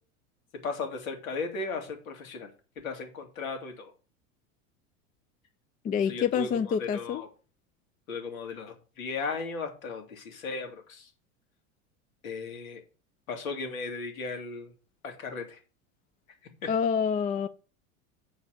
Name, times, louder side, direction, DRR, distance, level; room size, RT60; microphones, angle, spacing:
voice 1, 0.6-2.5 2.8-3.9 6.0-7.3 8.1-11.1 12.2-12.8 13.3-14.7 15.0-15.6, left 4 dB, 85° left, 2.6 m, -36 dB
voice 2, 5.8-7.2 16.7-17.5, left 7 dB, 20° left, 0.4 m, -27 dB
7.1 x 4.8 x 6.6 m
hypercardioid pair, 105°, 40 cm